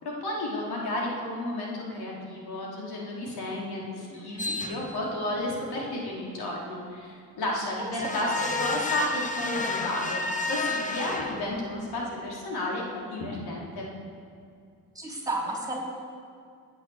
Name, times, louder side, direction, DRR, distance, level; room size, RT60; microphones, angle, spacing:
voice 1, 0.0-13.9, left 1 dB, 75° left, -3 dB, 4.0 m, -32 dB
voice 2, 4.1-4.6 7.8-7.9 8.3-8.4 14.9-15.8, right 2 dB, 10° right, -2 dB, 4.5 m, -33 dB
sound 1, 4.4-5.1 8.0-11.9, left 3 dB, 20° left, 1.3 m, -31 dB
18.5 x 8.7 x 7.3 m, 2.3 s
cardioid pair, 75°, 38 cm